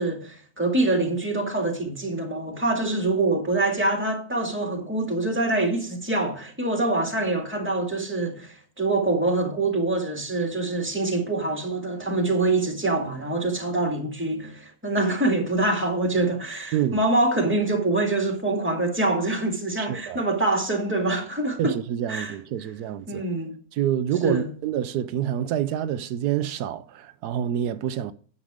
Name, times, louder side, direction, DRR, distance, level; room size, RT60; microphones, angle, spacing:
voice 1, 0.0-21.7 22.1-22.3 23.1-23.5 24.2-24.5, right 2 dB, 5° right, 1.9 m, -25 dB
voice 2, 19.8-20.2 21.6-23.2 23.7-28.1, right 10 dB, 85° right, 1.2 m, -27 dB
9.8 x 7.2 x 4.8 m
omnidirectional pair, 1.7 m